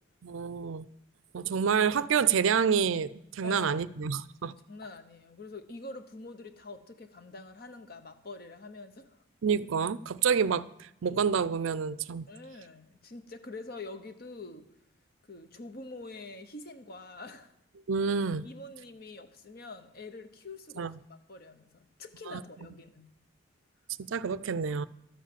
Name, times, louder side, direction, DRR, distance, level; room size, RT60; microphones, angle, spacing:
voice 1, 0.2-0.9 1.3-4.5 9.4-12.3 17.9-18.5 20.8-21.0 22.3-22.4 24.1-24.9, right 6 dB, 70° right, 0.4 m, -28 dB
voice 2, 3.4-3.8 4.7-9.2 12.3-14.7 15.2-17.5 18.4-23.1, left 3 dB, 45° left, 1.0 m, -45 dB
12.5 x 7.3 x 7.4 m
head